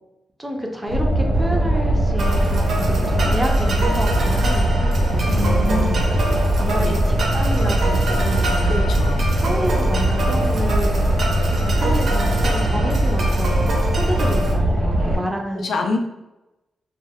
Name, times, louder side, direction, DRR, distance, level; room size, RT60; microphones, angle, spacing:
voice 1, 0.4-5.9 6.6-8.7 9.3-11.1 11.7-13.6 13.9-15.7, equal, 10° right, 1 dB, 0.5 m, -29 dB
Boat Water vehicle, 0.9-15.2, right 1 dB, 85° right, 1.0 m, -20 dB
sound 1, 2.2-14.5, right 2 dB, 70° right, 0.7 m, -28 dB
voice 2, 5.3-6.0 6.8-7.0 8.6-9.3 15.5-16.0, left 3 dB, 75° left, 4 dB, 0.4 m, -26 dB
2.2 x 2.1 x 3.4 m, 0.96 s
wide cardioid pair, 115°, 0 cm